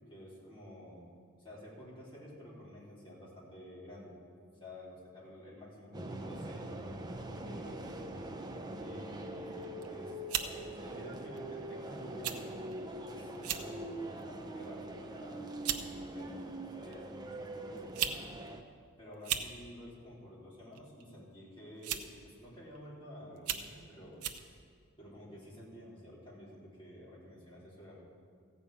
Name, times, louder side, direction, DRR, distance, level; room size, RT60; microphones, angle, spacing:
voice 1, 0.1-1.1 1.4-4.2 4.6-8.1 8.8-12.7 13.1-15.5 15.9-16.3 16.8-18.5 19.0-24.6 25.0-28.0, equal, 25° left, -7 dB, 3.5 m, -50 dB
sound 1, 5.9-18.6, right 1 dB, 20° right, 0.6 m, -43 dB
sound 2, 9.6-9.9 10.3-10.5 11.4-11.6 12.2-12.4 12.7-12.8 13.4-13.7 14.2-14.5 15.2-15.3 15.7-15.9 16.9-17.0 17.8-18.2 18.5-18.6 19.1-19.5 20.7-21.0 21.8-22.2 22.8-22.9 23.4-23.7 24.2-24.4, right 9 dB, 85° right, 0.8 m, -35 dB
15.0 x 5.6 x 8.5 m, 2.1 s
head